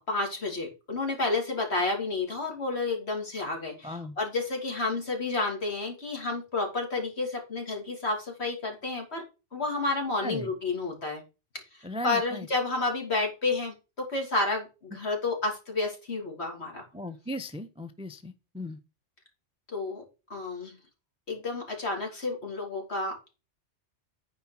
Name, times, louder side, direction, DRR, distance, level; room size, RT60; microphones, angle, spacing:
voice 1, 0.1-9.2 9.5-11.2 11.7-16.8 19.7-20.0 20.3-20.8 21.3-23.4, left 3 dB, 60° left, 3.0 m, -30 dB
voice 2, 3.8-4.2 10.2-10.5 11.8-12.5 16.9-18.8, left 1 dB, 10° right, 0.4 m, -37 dB
9.5 x 4.9 x 5.9 m
omnidirectional pair, 1.3 m